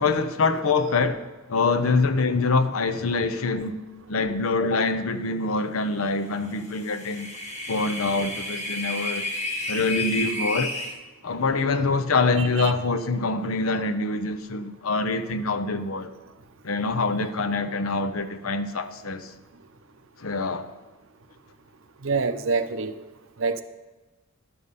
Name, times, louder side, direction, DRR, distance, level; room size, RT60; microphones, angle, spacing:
voice 1, 0.0-3.8 4.1-7.3 7.7-9.3 9.7-10.7 11.2-16.1 16.6-19.3 20.2-20.7, left 3 dB, 85° left, 0.7 m, -25 dB
sound 1, 6.6-10.9, left 1 dB, 30° left, 1.4 m, -31 dB
voice 2, 22.0-23.0 23.4-23.6, right 4 dB, 70° right, 0.7 m, -25 dB
12.0 x 6.9 x 5.5 m
head